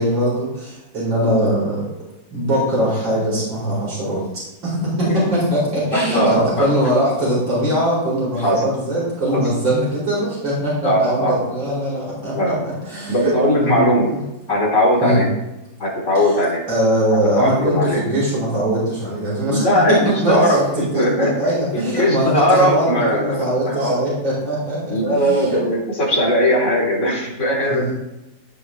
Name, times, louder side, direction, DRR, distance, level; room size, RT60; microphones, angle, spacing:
voice 1, 0.0-1.8 2.3-4.2 4.6-13.8 14.1-14.2 15.0-15.2 16.7-19.7 20.0-25.6 27.6-27.9, equal, 80° right, -6 dB, 4.9 m, -21 dB
voice 2, 5.0-5.3 5.9-6.5 8.4-8.6 9.3-9.4 10.8-11.4 12.3-12.6 13.1-14.1 14.5-15.3 15.8-16.6 17.0-18.0 19.5-21.3 21.7-24.0 24.9-27.9, equal, 40° left, -4 dB, 3.9 m, -19 dB
15.5 x 7.9 x 3.2 m, 0.96 s
omnidirectional pair, 2.0 m